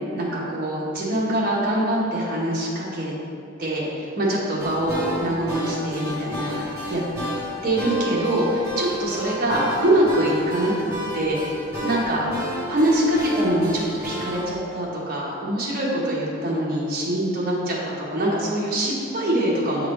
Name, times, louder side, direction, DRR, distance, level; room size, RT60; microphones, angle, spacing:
voice 1, 0.1-3.1 3.6-7.0 7.6-11.4 11.8-12.3 12.7-19.9, right 1 dB, 45° right, -6 dB, 1.3 m, -24 dB
sound 1, 4.6-14.6, equal, 15° right, 1.4 m, -31 dB
7.9 x 3.8 x 3.3 m, 2.6 s
head